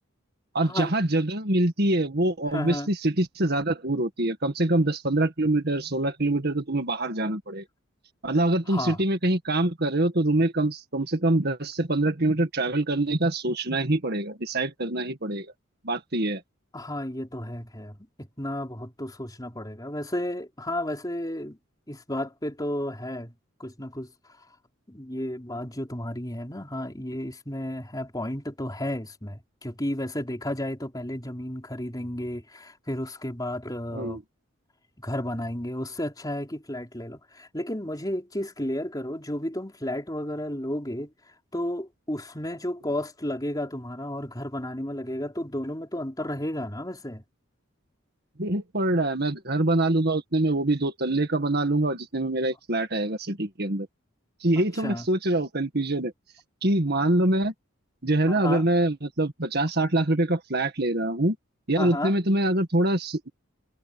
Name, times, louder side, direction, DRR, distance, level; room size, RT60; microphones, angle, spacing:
voice 1, 0.5-7.6 8.2-15.5 15.8-16.4 33.9-34.2 48.4-53.9 54.4-56.1 56.6-57.5 58.0-61.4 61.7-63.3, right 1 dB, 50° right, 1.9 m, -25 dB
voice 2, 2.5-2.9 8.7-9.0 16.7-21.6 21.9-23.3 23.6-24.1 24.9-34.2 35.0-41.1 41.5-47.2 54.7-55.1 58.3-58.6 61.8-62.1, left 1 dB, 20° left, 4.1 m, -32 dB
head